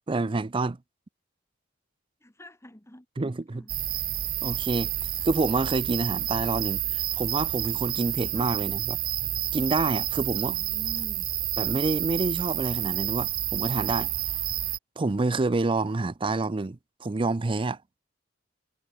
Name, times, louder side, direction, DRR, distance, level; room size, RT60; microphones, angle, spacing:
voice 1, 0.1-0.8 3.2-3.7 4.4-4.9 5.2-9.0 9.5-10.6 11.6-14.1 15.0-17.8, right 3 dB, 25° right, 0.5 m, -28 dB
voice 2, 2.2-3.0 3.5-3.7 8.3-8.6 10.3-11.3, left 1 dB, 15° left, 1.6 m, -46 dB
sound 1, 3.7-14.8, right 13 dB, 50° right, 1.4 m, -29 dB
head